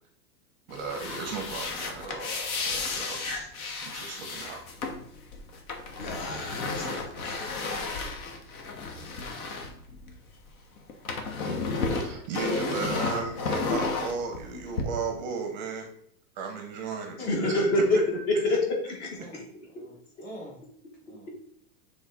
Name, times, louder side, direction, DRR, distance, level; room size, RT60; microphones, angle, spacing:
sound 1, 0.7-10.5 10.8-14.8, left 3 dB, 60° left, 1.3 m, -33 dB
voice 1, 0.7-3.5 3.8-4.6 11.9-15.9 16.4-17.2 17.4-17.6 19.2-19.3, right 5 dB, 30° right, 4 dB, 0.6 m, -35 dB
voice 2, 6.0-7.5 17.2-18.0 18.3-18.6 18.9-19.4, left 1 dB, 40° left, 0 dB, 1.8 m, -27 dB
voice 3, 17.2-17.5 19.2-20.6 21.1-21.3, equal, 20° left, -3 dB, 1.9 m, -44 dB
7.2 x 3.5 x 3.9 m, 0.69 s
supercardioid pair, 175°, 47 cm